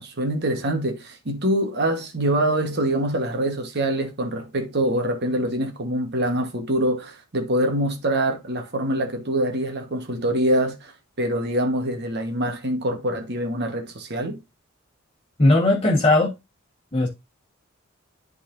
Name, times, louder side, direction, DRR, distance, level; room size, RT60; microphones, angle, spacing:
voice 1, 0.0-14.4, right 1 dB, 55° right, 1.3 m, -25 dB
voice 2, 15.4-16.3 16.9-17.1, left 2 dB, 30° left, 1.3 m, -18 dB
11.5 x 4.1 x 2.6 m
head